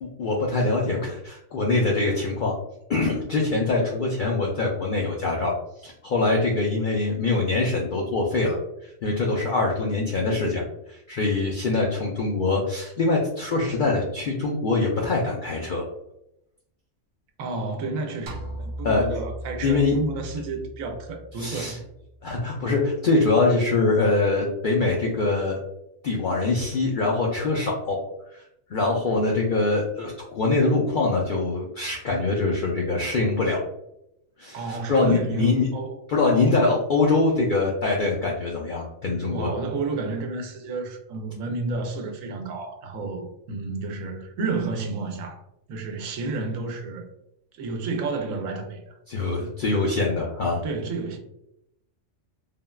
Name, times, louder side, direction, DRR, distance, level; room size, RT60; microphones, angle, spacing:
voice 1, 0.0-2.6 2.9-8.6 8.8-15.9 18.8-19.0 19.6-20.0 21.4-21.8 22.2-25.6 26.0-28.0 28.3-28.4 28.7-33.6 34.4-35.7 36.1-39.5 49.1-50.6, left 3 dB, 70° left, 0.4 m, -23 dB
voice 2, 17.4-21.8 34.5-36.0 36.2-36.7 39.3-45.4 45.7-47.1 47.5-48.9 50.6-51.2, right 3 dB, 85° right, 1.0 m, -31 dB
sound 1, 18.3-22.7, equal, 65° right, 0.5 m, -38 dB
3.4 x 2.1 x 2.2 m
omnidirectional pair, 1.4 m